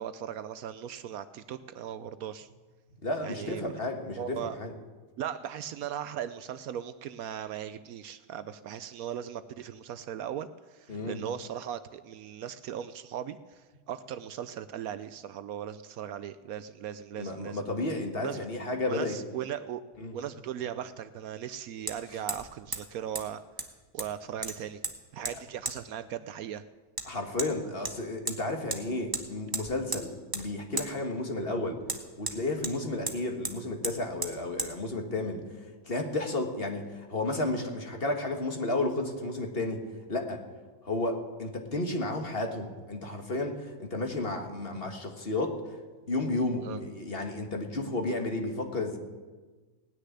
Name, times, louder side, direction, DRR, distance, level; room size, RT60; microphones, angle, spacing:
voice 1, 0.0-2.5 3.2-3.6 4.2-4.6 5.2-17.6 18.2-18.5 18.9-19.8 20.1-23.4 23.9-24.8 25.1-26.6 46.6-46.8, right 9 dB, 70° right, 13 dB, 1.0 m, -38 dB
voice 2, 3.0-4.7 10.9-11.2 17.2-19.2 20.0-20.2 27.1-31.8 32.2-35.4 35.9-39.8 40.1-40.4 40.8-45.6 46.1-49.0, left 2 dB, 40° left, 4 dB, 1.7 m, -32 dB
Hammer, 19.9-20.0 21.9-22.0 22.3-22.5 22.7-22.8 23.2-23.3 23.6-24.1 24.4-24.9 25.3-25.4 25.7-25.8 27.0-27.1 27.4-27.5 27.9-28.4 28.7-28.8 29.1-29.2 29.5-30.0 30.3-30.5 30.8-30.9 31.9-32.8 33.1-33.2 33.4-33.6 33.8-34.0 34.2-34.3 34.6-34.7, right 2 dB, 15° right, 1.0 m, -34 dB
18.5 x 6.6 x 9.9 m, 1.3 s
omnidirectional pair, 1.7 m